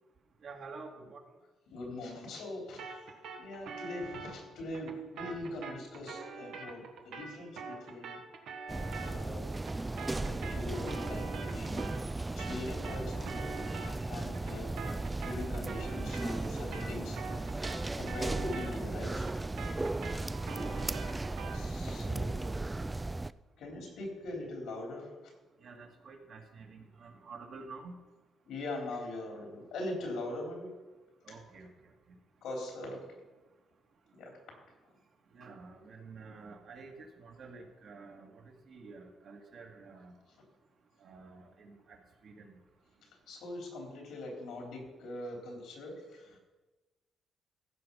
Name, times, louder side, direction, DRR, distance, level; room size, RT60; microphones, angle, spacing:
voice 1, 0.4-1.2 21.3-21.4 25.6-28.0 31.3-31.7 35.3-40.1 41.0-42.0 42.2-42.5, right 4 dB, 60° right, 1 dB, 2.2 m, -49 dB
voice 2, 1.7-3.0 3.4-8.2 9.0-9.5 10.2-12.0 12.3-13.5 13.8-14.8 15.2-17.2 17.9-19.3 21.5-22.4 23.6-25.3 28.5-30.7 32.4-33.0 34.2-34.3 43.3-46.4, left 2 dB, 85° left, 0 dB, 3.8 m, -42 dB
sound 1, 2.8-12.1 12.4-21.7, right 4 dB, 80° right, 1.5 m, -45 dB
sound 2, 8.7-23.3, right 2 dB, 15° right, 0.3 m, -36 dB
15.0 x 6.2 x 5.5 m, 1.2 s
cardioid pair, 90°, 0 cm